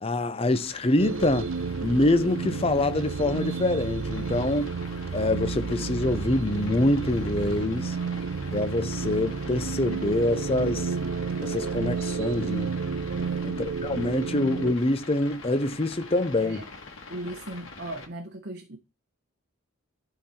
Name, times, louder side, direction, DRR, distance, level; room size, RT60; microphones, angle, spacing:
voice 1, 0.0-1.5 1.8-4.7 5.1-8.0 8.5-10.9 11.4-12.7 13.4-16.6, left 2 dB, 25° left, 0.6 m, -25 dB
sound 1, 0.5-18.1, left 3 dB, 65° left, 1.8 m, -45 dB
sound 2, 1.0-14.8, right 5 dB, 70° right, 0.5 m, -31 dB
voice 2, 13.2-13.5 16.4-16.7 17.1-18.8, right 1 dB, 50° right, 0.9 m, -38 dB
11.5 x 3.9 x 4.3 m
head